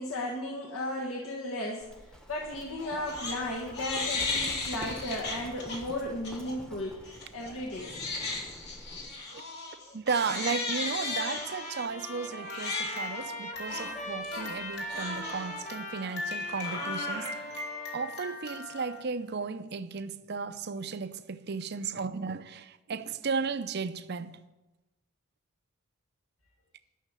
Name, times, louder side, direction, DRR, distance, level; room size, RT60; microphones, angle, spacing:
voice 1, 0.0-7.9, left 1 dB, 75° left, 1.5 m, -35 dB
Livestock farm animals working animals, 1.8-9.2, equal, 5° left, 0.9 m, -47 dB
Crying sobbing, 2.8-3.4 3.7-5.8 6.2-6.5 7.0-19.0, left 3 dB, 50° left, 2.7 m, -36 dB
voice 2, 9.9-24.4, right 5 dB, 50° right, 0.6 m, -35 dB
Trumpet, 11.0-18.1, left 1 dB, 35° left, 1.1 m, -42 dB
12.0 x 6.6 x 7.4 m
head